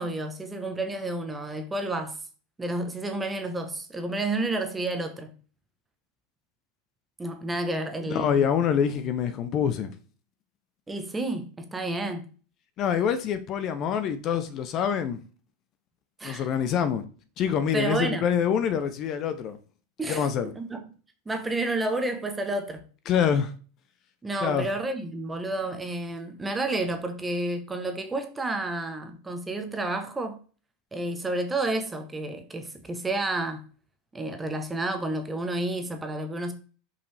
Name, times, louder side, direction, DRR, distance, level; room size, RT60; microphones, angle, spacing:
voice 1, 0.0-2.2 2.6-5.3 7.2-8.5 10.9-12.3 16.2-16.5 17.7-18.2 20.0-20.8 21.3-22.8 24.2-30.4 30.9-33.7 34.1-36.5, right 2 dB, 10° right, 0.9 m, -30 dB
voice 2, 8.1-9.9 12.8-15.2 16.2-17.0 17.4-19.6 20.1-20.5 23.1-23.5 24.4-24.7, left 8 dB, 35° left, 0.6 m, -25 dB
5.3 x 5.3 x 3.3 m
supercardioid pair, 145°, 0 cm